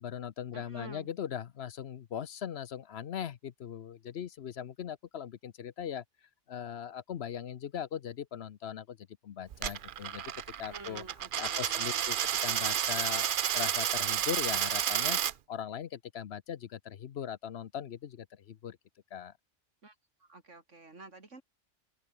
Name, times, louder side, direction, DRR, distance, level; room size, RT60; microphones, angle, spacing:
voice 1, 0.0-6.0 6.5-10.2 10.6-11.0 11.4-12.2 12.4-15.2 15.5-18.8 19.1-19.3, left 9 dB, 65° left, 1.0 m, -39 dB
voice 2, 0.5-1.1 10.7-12.0 19.8-21.4, right 3 dB, 85° right, 3.8 m, -50 dB
Coin (dropping), 9.5-15.3, right 9 dB, 55° right, 0.7 m, -31 dB
omnidirectional pair, 1.2 m